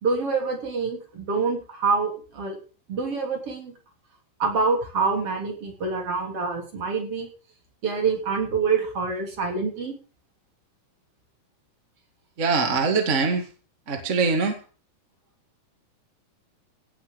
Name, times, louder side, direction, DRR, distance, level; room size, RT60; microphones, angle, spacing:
voice 1, 0.0-2.6 2.9-3.7 4.4-7.3 7.8-10.0, right 4 dB, 45° right, 2 dB, 4.0 m, -26 dB
voice 2, 12.4-13.5 13.9-14.6, right 4 dB, 25° right, 4 dB, 1.9 m, -23 dB
17.0 x 6.4 x 6.8 m, 0.38 s
omnidirectional pair, 3.7 m